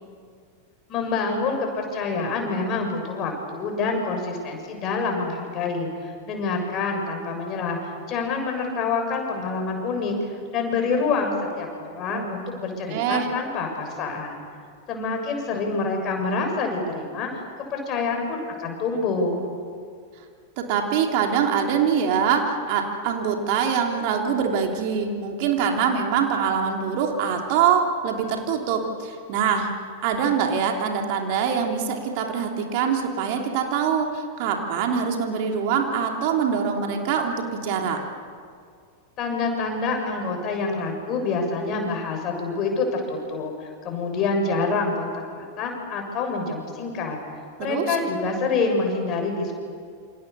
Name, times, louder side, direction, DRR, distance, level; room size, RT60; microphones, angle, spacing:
voice 1, 0.9-10.2 10.5-14.4 14.9-17.4 17.7-19.4 39.2-47.2 47.6-49.5, left 4 dB, 35° left, 3 dB, 6.9 m, -27 dB
voice 2, 12.9-13.3 20.6-29.7 30.0-38.0 47.6-48.0, right 7 dB, 45° right, 2 dB, 3.2 m, -24 dB
28.5 x 27.5 x 6.9 m, 2.2 s
figure-of-eight pair, 90°, 0 cm